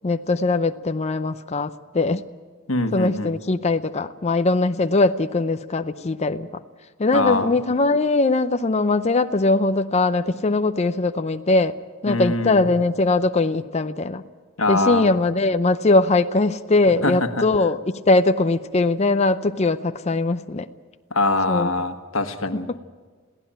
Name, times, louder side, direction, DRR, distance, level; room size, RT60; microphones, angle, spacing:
voice 1, 0.0-2.2 2.9-6.5 7.0-11.8 12.0-14.2 14.7-20.7 21.5-21.7 22.7-22.8, left 2 dB, 30° left, 10 dB, 0.6 m, -21 dB
voice 2, 2.7-3.3 7.1-7.5 12.1-12.6 14.6-15.1 17.0-17.1 21.1-22.6, left 2 dB, 85° left, 7 dB, 1.5 m, -23 dB
22.0 x 16.0 x 8.9 m, 1.5 s
head